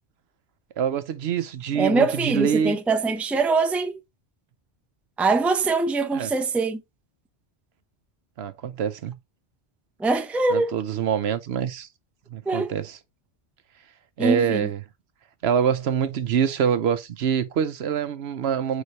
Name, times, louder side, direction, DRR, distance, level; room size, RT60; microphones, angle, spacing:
voice 1, 0.8-2.8 6.1-6.3 8.4-9.2 10.5-11.9 12.3-13.0 14.2-14.8 15.4-18.8, right 8 dB, 70° right, 0.9 m, -25 dB
voice 2, 1.7-3.9 5.2-6.8 10.0-10.7 12.5-12.7 14.2-14.7, right 3 dB, ahead, 0.5 m, -23 dB
4.9 x 4.9 x 4.0 m
omnidirectional pair, 1.2 m